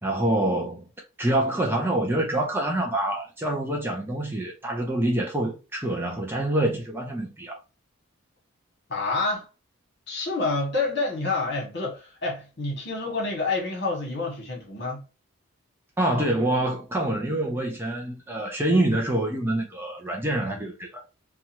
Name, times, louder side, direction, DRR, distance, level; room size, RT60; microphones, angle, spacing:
voice 1, 0.0-0.9 1.2-7.6 16.0-21.0, right 1 dB, 10° right, 0.5 m, -26 dB
voice 2, 8.9-9.5 10.1-15.0, left 3 dB, 55° left, 1.4 m, -28 dB
2.7 x 2.3 x 2.8 m
head